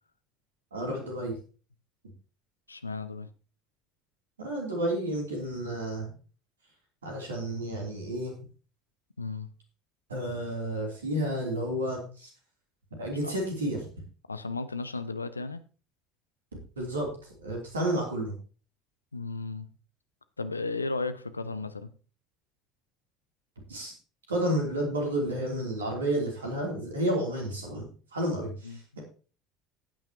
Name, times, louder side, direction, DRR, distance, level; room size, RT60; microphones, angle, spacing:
voice 1, 0.7-1.4 4.4-6.1 7.0-8.3 10.1-12.3 13.0-13.9 16.5-17.1 17.4-18.3 23.7-23.9 24.3-29.0, right 1 dB, 75° right, 0 dB, 3.1 m, -31 dB
voice 2, 2.7-3.3 9.2-9.5 13.2-13.4 14.3-15.6 19.1-19.7 20.4-21.9 28.6-28.8, left 3 dB, 85° left, 13 dB, 0.7 m, -34 dB
14.5 x 8.9 x 2.9 m, 0.38 s
figure-of-eight pair, 65°, 0 cm